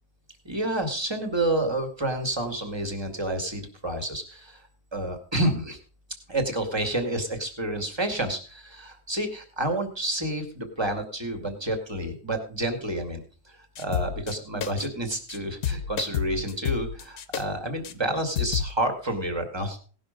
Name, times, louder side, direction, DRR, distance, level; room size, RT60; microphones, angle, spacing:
voice 1, 0.4-4.6 4.9-5.8 6.3-13.2 13.5-19.8, right 1 dB, 15° right, 5 dB, 2.0 m, -29 dB
sound 1, 13.8-14.4 14.6-14.9 15.1-15.4 15.6-17.4 17.8-17.9 18.4-18.7, left 8 dB, 60° left, 1.3 m, -30 dB
17.5 x 6.3 x 5.1 m, 0.40 s
omnidirectional pair, 1.7 m